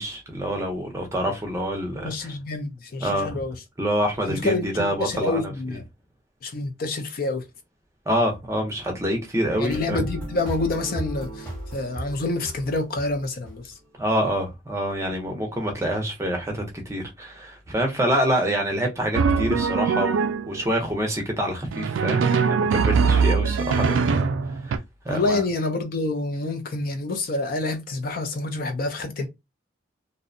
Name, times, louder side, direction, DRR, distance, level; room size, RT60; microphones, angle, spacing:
voice 1, 0.0-2.1 3.0-3.4 3.8-5.5 8.1-10.0 14.0-22.2 22.5-24.3 24.6-24.8 25.0-25.4, equal, 15° right, 0.6 m, -26 dB
voice 2, 2.0-3.5 4.3-5.8 6.4-7.4 9.6-13.7 25.1-29.3, left 2 dB, 50° left, 0.4 m, -27 dB
sound 1, 9.7-14.1, right 1 dB, 10° left, 1.0 m, -35 dB
Drum, 19.1-20.6 21.7-24.8, right 5 dB, 80° right, 0.3 m, -22 dB
2.6 x 2.1 x 2.5 m
head